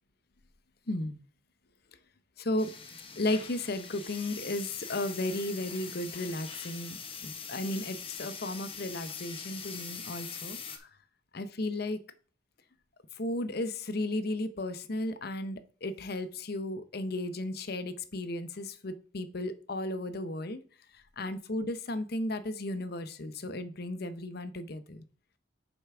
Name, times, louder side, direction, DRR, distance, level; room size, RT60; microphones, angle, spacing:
voice 1, 0.9-1.2 2.4-2.7 3.2-10.9 11.3-12.0 13.2-20.6 21.2-25.0, left 1 dB, 55° left, 11 dB, 0.8 m, -34 dB
sound 1, 2.6-10.8, left 6 dB, 30° left, 1.0 m, -43 dB
6.9 x 5.8 x 4.8 m, 0.41 s
head